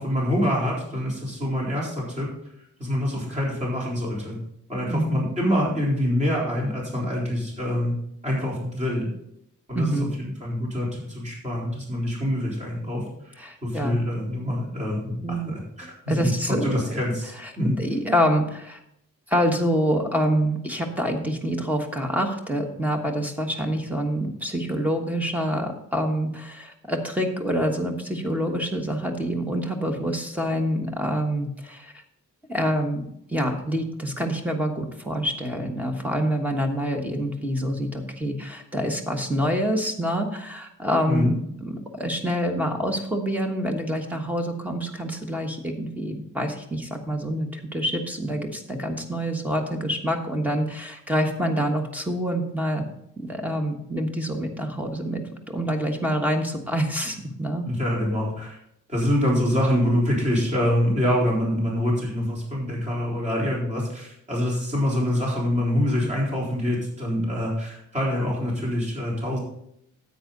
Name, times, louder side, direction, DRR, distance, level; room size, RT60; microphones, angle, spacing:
voice 1, 0.0-2.3 2.8-4.4 4.7-8.0 8.2-9.1 9.7-17.7 41.1-41.3 57.6-58.6 58.9-69.4, equal, 25° right, -5 dB, 3.9 m, -25 dB
voice 2, 4.9-5.3 9.7-10.1 13.4-14.9 15.2-15.5 16.1-17.0 17.4-18.8 19.3-31.9 32.5-41.4 41.6-52.8 53.2-57.6, equal, 5° right, 3 dB, 1.3 m, -26 dB
10.0 x 8.4 x 3.9 m, 0.75 s
wide cardioid pair, 155°, 31 cm